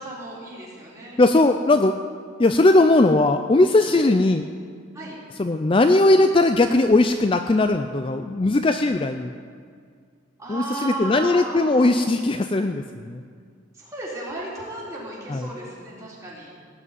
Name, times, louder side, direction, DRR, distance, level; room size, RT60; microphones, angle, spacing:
voice 1, 0.0-1.2 3.9-4.1 4.9-5.2 10.4-11.9 13.7-16.5, right 1 dB, 15° right, -7 dB, 4.1 m, -34 dB
voice 2, 1.2-2.0 2.4-4.4 5.4-9.3 10.5-13.2 15.3-15.5, left 2 dB, 25° left, 7 dB, 0.4 m, -19 dB
18.0 x 6.2 x 9.3 m, 2.1 s
head